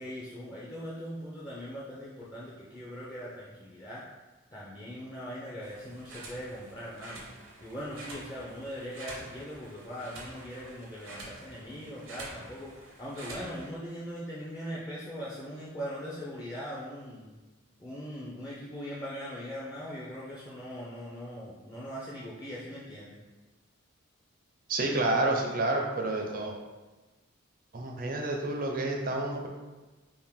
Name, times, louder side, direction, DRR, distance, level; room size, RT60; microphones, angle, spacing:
voice 1, 0.0-4.0 4.5-7.2 7.6-17.4 17.8-23.2, equal, 20° left, -7 dB, 0.5 m, -40 dB
sound 1, 5.6-13.7, right 2 dB, 80° right, 0.8 m, -47 dB
voice 2, 24.7-26.6 27.7-29.5, right 2 dB, 45° right, 1 dB, 0.5 m, -29 dB
3.5 x 2.5 x 3.6 m, 1.2 s
head